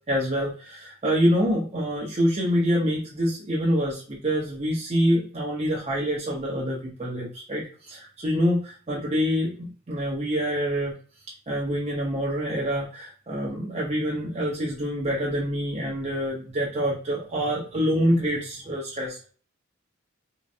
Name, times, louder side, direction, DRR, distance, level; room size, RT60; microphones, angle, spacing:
voice 1, 0.1-10.9 11.5-19.3, equal, 30° right, -5 dB, 0.8 m, -26 dB
3.7 x 2.1 x 2.7 m, 0.41 s
head